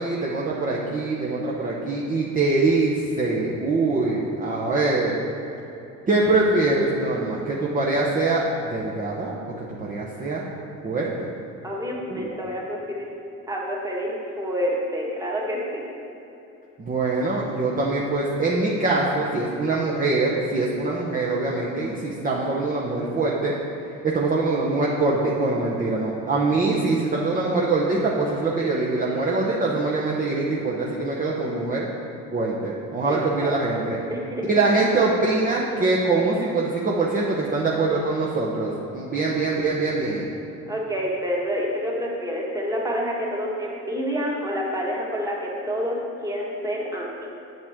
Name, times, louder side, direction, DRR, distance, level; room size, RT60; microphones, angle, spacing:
voice 1, 0.0-5.1 6.1-8.4 8.7-9.3 9.6-10.5 10.8-11.3 12.1-12.3 16.8-23.5 24.0-31.9 32.3-34.0 34.5-40.3, right 3 dB, 30° right, -4 dB, 0.9 m, -23 dB
voice 2, 11.6-13.1 13.5-15.8 33.0-33.8 34.1-34.6 40.7-47.3, equal, 10° right, -3 dB, 1.5 m, -28 dB
7.9 x 7.2 x 3.6 m, 2.9 s
cardioid pair, 105°, 29 cm